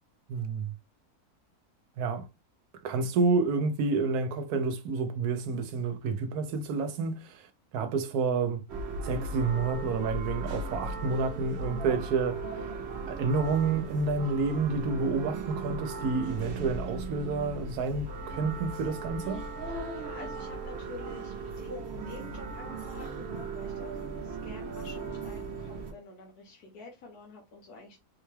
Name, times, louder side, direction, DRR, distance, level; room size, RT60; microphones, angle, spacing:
voice 1, 0.3-0.7 2.0-2.3 2.8-7.4 7.7-8.6 9.0-12.4 13.1-19.4, right 4 dB, 80° right, 1.1 m, -29 dB
sound 1, 8.7-25.9, right 3 dB, 55° right, 0.9 m, -37 dB
voice 2, 19.7-28.0, left 3 dB, 80° left, 1.5 m, -48 dB
4.2 x 2.2 x 3.1 m
omnidirectional pair, 1.6 m